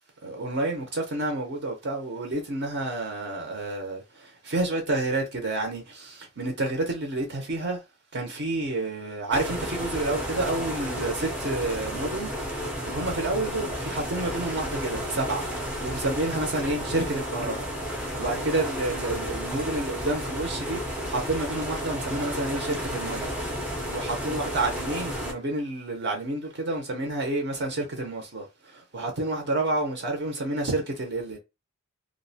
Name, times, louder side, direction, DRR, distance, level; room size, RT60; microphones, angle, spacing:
voice 1, 0.2-7.8 8.1-23.3 23.9-31.4, right 2 dB, 50° right, 0.6 m, -29 dB
sound 1, 9.3-25.3, equal, 5° right, 0.4 m, -32 dB
2.4 x 2.0 x 2.6 m
head